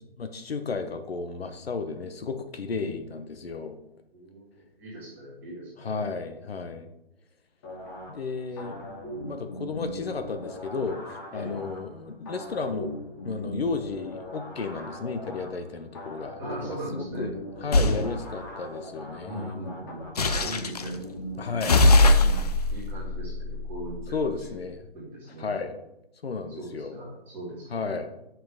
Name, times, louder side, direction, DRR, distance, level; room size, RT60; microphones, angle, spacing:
voice 1, 0.2-3.8 5.8-6.9 8.1-11.0 11.3-12.9 13.2-17.3 17.6-19.7 21.4-22.5 24.1-24.8 25.4-25.7 26.2-27.0 27.7-28.1, left 4 dB, 75° left, 8 dB, 1.0 m, -33 dB
voice 2, 2.7-3.0 4.1-4.5 4.8-6.0 9.1-9.4 11.3-11.6 16.4-17.3 17.8-18.1 19.2-21.0 21.3-21.4 22.7-24.0 24.2-24.6 24.9-25.6 26.5-27.9, right 1 dB, 5° right, -8 dB, 1.8 m, -39 dB
sound 1, 7.6-22.4, equal, 20° left, 1.3 m, -40 dB
sound 2, 17.7-18.0 20.2-20.9 21.6-24.2, left 2 dB, 40° left, 0.5 m, -21 dB
7.6 x 5.7 x 3.5 m, 0.85 s
hypercardioid pair, 170°, 31 cm